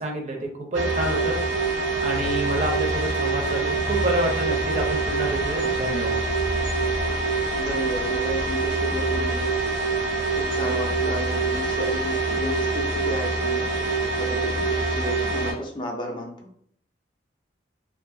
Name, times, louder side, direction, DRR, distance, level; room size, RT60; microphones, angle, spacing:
voice 1, 0.0-1.4 2.0-6.2, right 1 dB, 40° right, 1 dB, 0.5 m, -28 dB
sound 1, 0.7-15.5, right 3 dB, 90° right, 0.8 m, -25 dB
voice 2, 7.5-9.5 10.3-16.3, left 1 dB, 25° left, 1 dB, 0.3 m, -33 dB
2.5 x 2.4 x 2.5 m, 0.65 s
head